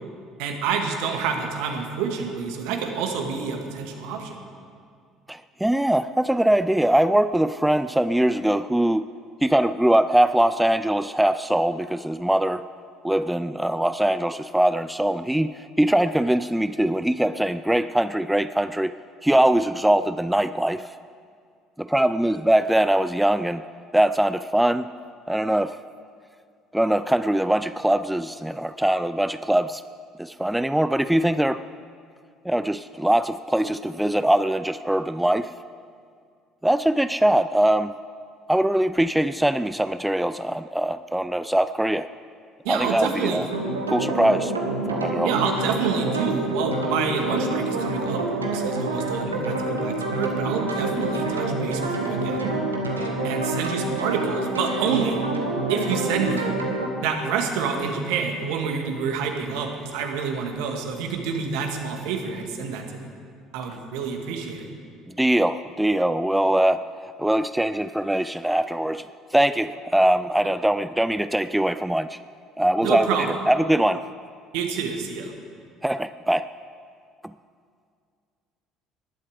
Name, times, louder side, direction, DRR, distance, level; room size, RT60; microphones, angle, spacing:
voice 1, 0.4-4.4 42.6-43.5 45.2-48.3 48.5-52.6 53.2-55.2 55.7-56.5 57.0-63.1 63.5-64.7 72.8-73.4 74.5-75.3, right 6 dB, 60° right, 4 dB, 1.7 m, -28 dB
voice 2, 5.3-9.1 9.4-12.6 13.0-18.9 19.2-20.9 21.8-23.6 23.9-24.9 25.3-25.8 26.7-29.8 30.2-31.6 32.5-35.5 36.6-37.9 38.5-42.1 42.7-43.5 43.9-44.5 44.9-45.3 65.1-69.1 69.3-72.2 72.6-73.1 73.5-74.1 75.8-76.4, right 1 dB, 5° right, 13 dB, 0.4 m, -22 dB
sound 1, 43.5-56.9, right 2 dB, 80° right, 1.5 m, -27 dB
19.0 x 11.5 x 5.0 m, 2.2 s
figure-of-eight pair, 55°, 0 cm